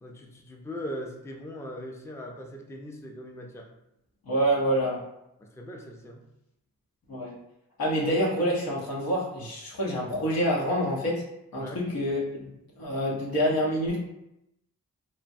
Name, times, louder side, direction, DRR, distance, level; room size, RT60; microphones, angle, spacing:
voice 1, 0.0-3.7 5.4-6.2 11.6-11.8, equal, 10° left, 1 dB, 0.4 m, -40 dB
voice 2, 4.3-5.0 7.1-7.3 7.8-11.2 11.5-12.5 12.8-14.0, equal, 80° left, -4 dB, 0.9 m, -27 dB
3.0 x 2.1 x 2.6 m, 0.84 s
cardioid pair, 45°, 35 cm